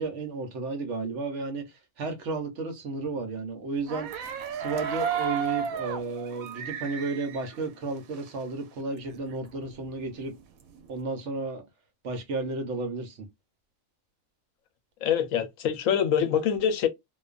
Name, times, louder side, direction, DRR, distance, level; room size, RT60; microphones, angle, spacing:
voice 1, 0.0-4.1 4.5-10.3 10.9-11.6 12.0-13.3, right 3 dB, 65° right, 1.1 m, -33 dB
sound 1, 3.9-8.5 8.8-8.9 9.1-10.9, right 8 dB, 90° right, 1.0 m, -34 dB
voice 2, 15.0-16.9, left 8 dB, 80° left, 1.0 m, -25 dB
2.5 x 2.3 x 2.3 m
omnidirectional pair, 1.4 m